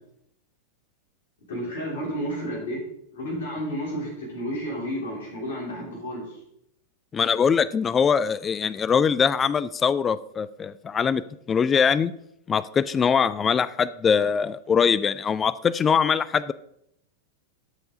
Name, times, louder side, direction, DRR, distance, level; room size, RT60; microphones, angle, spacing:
voice 1, 1.5-2.8 3.1-6.2, equal, 65° left, -3 dB, 3.2 m, -31 dB
voice 2, 7.1-11.2 11.5-12.1 12.5-16.5, left 6 dB, 20° left, 17 dB, 0.3 m, -22 dB
13.0 x 4.6 x 3.7 m, 0.76 s
figure-of-eight pair, 90°, 0 cm